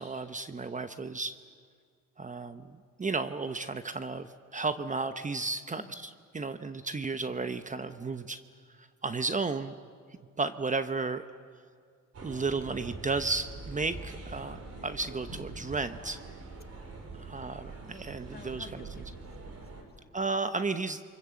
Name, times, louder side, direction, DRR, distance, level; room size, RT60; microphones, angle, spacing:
voice 1, 0.0-1.4 2.2-8.4 8.8-9.7 10.4-11.2 12.2-16.2 17.1-18.8 20.1-21.0, right 3 dB, 25° right, 10 dB, 0.9 m, -33 dB
voice 2, 5.7-6.1 16.8-17.9 18.3-19.3 19.6-20.1 20.4-21.0, left 5 dB, 30° left, 6 dB, 2.1 m, -54 dB
sound 1, 12.1-19.8, right 3 dB, 55° right, 4.8 m, -44 dB
27.5 x 24.5 x 7.7 m, 2.1 s
cardioid pair, 90°, 30 cm